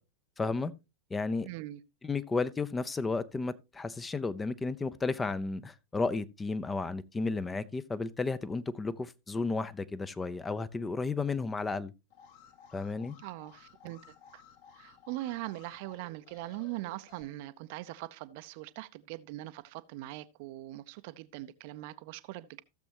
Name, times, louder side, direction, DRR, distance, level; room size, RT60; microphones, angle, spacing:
voice 1, 0.4-0.7 1.1-1.5 2.0-11.9 12.7-13.2, left 3 dB, 15° left, 0.6 m, -33 dB
voice 2, 1.4-1.8 13.2-14.0 14.3-14.4 14.7-22.6, right 17 dB, 45° right, 0.6 m, -41 dB
Alarm, 12.1-17.2, left 6 dB, 55° left, 2.1 m, -57 dB
15.5 x 7.1 x 2.9 m
figure-of-eight pair, 90°, 0 cm